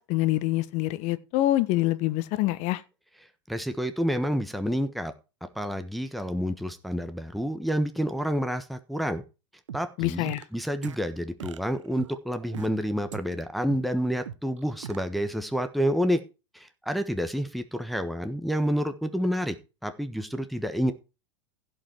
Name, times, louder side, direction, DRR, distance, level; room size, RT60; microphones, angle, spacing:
voice 1, 0.0-2.8 10.0-10.4, left 16 dB, 50° left, 1.3 m, -25 dB
voice 2, 3.5-5.1 5.5-9.2 9.7-16.2 16.5-19.6 19.8-20.9, equal, ahead, 1.3 m, -29 dB
sound 1, 9.7-10.4 10.8-10.9 11.4-12.7 13.1-13.2 13.7-13.8 14.3-15.0, right 8 dB, 80° right, 1.1 m, -39 dB
16.0 x 5.4 x 4.6 m
hypercardioid pair, 100°, 15 cm